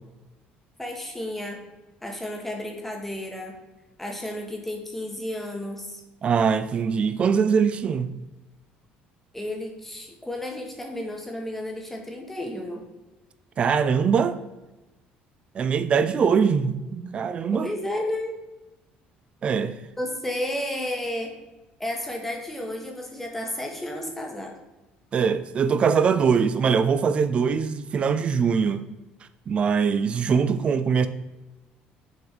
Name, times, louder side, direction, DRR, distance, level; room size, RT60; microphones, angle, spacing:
voice 1, 0.8-1.6 2.0-3.6 4.0-6.0 9.3-12.8 17.5-18.3 20.0-21.3 21.8-24.5, left 1 dB, 5° left, 1.2 m, -32 dB
voice 2, 6.2-8.1 13.6-14.4 15.5-17.7 19.4-19.7 25.1-28.8 29.5-31.1, right 6 dB, 35° right, 0.4 m, -22 dB
6.4 x 3.5 x 4.5 m
cardioid pair, 130°, 3 cm